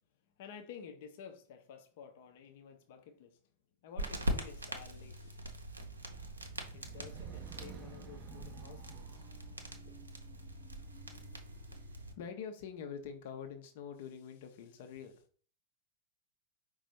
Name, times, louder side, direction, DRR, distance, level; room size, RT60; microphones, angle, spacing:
voice 1, 0.4-3.4 3.8-5.4 6.7-9.3 9.6-10.0 12.1-15.2, left 7 dB, 50° left, 0.7 m, -49 dB
sound 1, 4.0-12.1, equal, 80° right, 0.7 m, -42 dB
sound 2, 5.6-12.0, right 8 dB, 35° right, 0.5 m, -53 dB
5.0 x 2.3 x 4.3 m
figure-of-eight pair, 90°, 0 cm